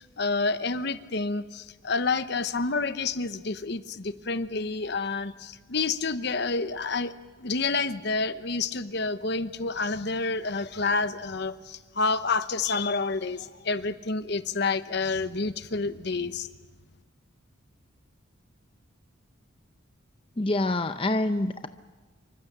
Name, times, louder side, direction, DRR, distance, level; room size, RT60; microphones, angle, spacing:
voice 1, 0.0-7.1 7.4-16.5, left 3 dB, 55° left, 12 dB, 0.9 m, -29 dB
voice 2, 20.4-21.7, left 2 dB, 25° left, 9 dB, 0.7 m, -26 dB
26.5 x 24.5 x 6.7 m, 1.3 s
head